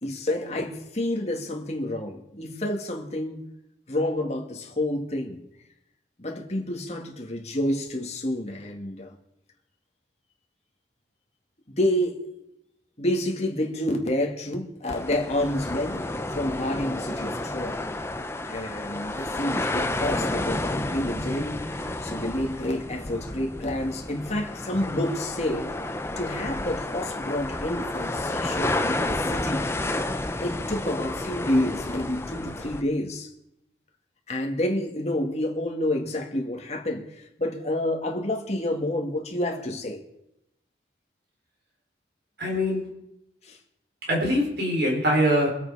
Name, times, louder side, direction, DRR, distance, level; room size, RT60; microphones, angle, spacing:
voice 1, 0.0-3.4 3.9-5.4 6.2-9.2 11.7-12.3 13.0-17.8 18.5-25.7 26.2-29.7 30.4-33.3 34.3-40.0 43.4-43.6, left 1 dB, 35° left, 2.1 m, -29 dB
sound 1, 14.9-32.8, left 2 dB, 15° left, 0.7 m, -31 dB
voice 2, 42.4-42.9 44.0-45.5, equal, 65° right, 4.2 m, -23 dB
24.0 x 8.4 x 4.9 m
head